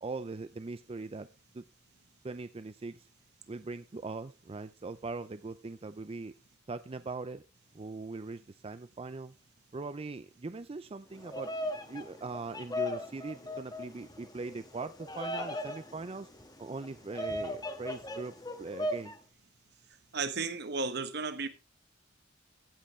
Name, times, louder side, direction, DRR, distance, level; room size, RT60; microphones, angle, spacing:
voice 1, 0.0-1.3 1.5-1.6 2.2-3.1 3.5-6.3 6.7-7.4 7.7-9.3 9.7-11.5 11.9-16.3 16.6-19.2, right 3 dB, 30° right, 0.5 m, -41 dB
Bird vocalization bird call bird song, 11.1-19.2, left 1 dB, 20° left, 1.4 m, -38 dB
voice 2, 20.1-21.5, right 4 dB, 60° right, 1.3 m, -33 dB
15.5 x 7.8 x 3.2 m
head